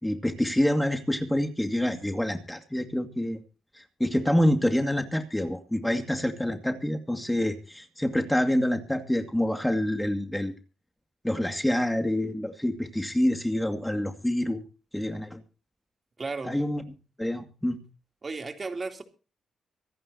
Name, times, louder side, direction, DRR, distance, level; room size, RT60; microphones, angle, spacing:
voice 1, 0.0-3.4 3.7-10.5 11.2-14.6 14.9-15.4 16.4-16.8 17.2-17.8, left 1 dB, 10° left, 5 dB, 2.3 m, -27 dB
voice 2, 16.2-16.6 18.2-19.0, right 3 dB, 40° right, 4 dB, 3.4 m, -34 dB
25.0 x 11.0 x 2.9 m, 0.35 s
supercardioid pair, 55°, 0 cm